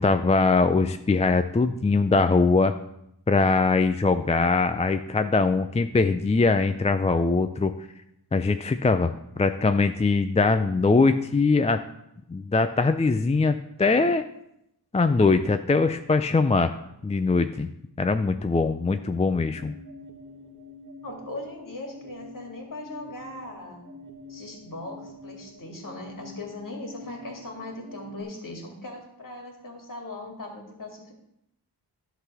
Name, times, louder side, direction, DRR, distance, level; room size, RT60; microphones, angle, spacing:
voice 1, 0.0-2.8 3.3-7.7 8.3-11.8 12.3-14.2 14.9-16.7 17.0-17.7 18.0-19.7, left 3 dB, 15° left, 8 dB, 0.4 m, -22 dB
sound 1, 18.8-28.2, left 1 dB, 25° right, 1.3 m, -46 dB
voice 2, 21.0-23.8 24.3-31.1, left 2 dB, 50° left, 1 dB, 2.4 m, -39 dB
11.0 x 4.0 x 6.8 m, 0.81 s
wide cardioid pair, 90°, 41 cm